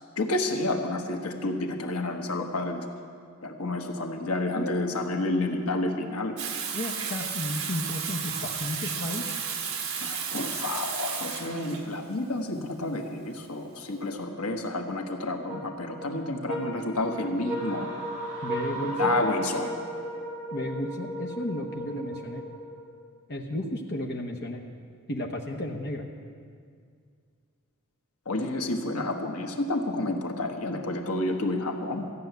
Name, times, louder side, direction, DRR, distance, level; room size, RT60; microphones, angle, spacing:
voice 1, 0.2-2.8 3.4-6.4 10.0-17.9 19.0-19.7 28.3-32.1, left 2 dB, 85° left, 3 dB, 1.2 m, -30 dB
Water tap faucet / Sink (filling or washing), 6.4-14.0, right 7 dB, 70° right, 1.3 m, -33 dB
voice 2, 6.7-9.3 18.4-19.2 20.5-22.4 23.3-24.7 25.1-26.1, left 1 dB, 50° left, 1 dB, 0.9 m, -33 dB
sound 1, 15.5-23.0, right 1 dB, 5° right, 2.6 m, -35 dB
sound 2, 17.4-20.0, right 3 dB, 35° right, 4.4 m, -40 dB
14.5 x 7.0 x 9.2 m, 2.2 s
head